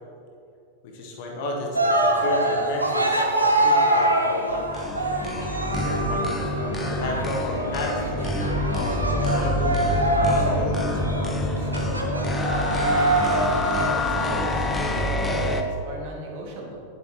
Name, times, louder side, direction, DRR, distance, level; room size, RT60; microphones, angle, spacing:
voice 1, 0.8-4.9 5.8-6.3 6.7-11.7, left 2 dB, 50° left, 0 dB, 1.5 m, -33 dB
Cheering, 1.7-14.1, right 1 dB, 85° right, 0.9 m, -24 dB
sound 1, 4.5-15.6, left 1 dB, 10° left, 0.8 m, -27 dB
voice 2, 12.8-13.5 14.0-16.8, right 2 dB, 50° right, -1 dB, 1.9 m, -36 dB
9.7 x 9.2 x 3.0 m, 2.6 s
figure-of-eight pair, 90°, 0 cm